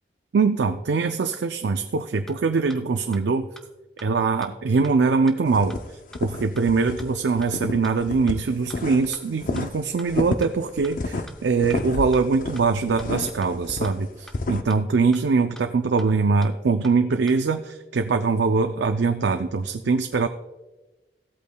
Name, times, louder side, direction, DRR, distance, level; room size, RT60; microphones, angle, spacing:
voice 1, 0.3-3.5 4.0-5.7 6.2-20.3, right 4 dB, 80° right, 7 dB, 0.4 m, -22 dB
sound 1, 2.3-2.4 2.7-2.8 3.1-3.2 3.6-3.7 4.0-4.1 4.4-4.5 4.8-4.9 5.3-5.4 5.7-5.8 6.1-6.2 6.6-6.7 7.0-7.1 7.4-7.5 7.8-7.9 8.3-8.4 8.7-8.8 9.1-9.2 9.6-9.7 10.0-10.1 10.4-10.5 10.8-10.9 11.3-11.4 11.7-11.8 12.1-12.2 12.6-12.7 13.0-13.1 13.4-13.5 13.8-13.9 14.3-14.4 14.7-14.8 15.1-15.2 15.6-15.7 16.0-16.1 16.4-16.5 16.8-16.9 17.3-17.4, equal, ahead, 0.6 m, -44 dB
sound 2, 5.5-7.0 7.3-9.1 9.4-14.6, left 2 dB, 50° left, 0.5 m, -30 dB
15.5 x 8.3 x 2.3 m, 1.1 s
head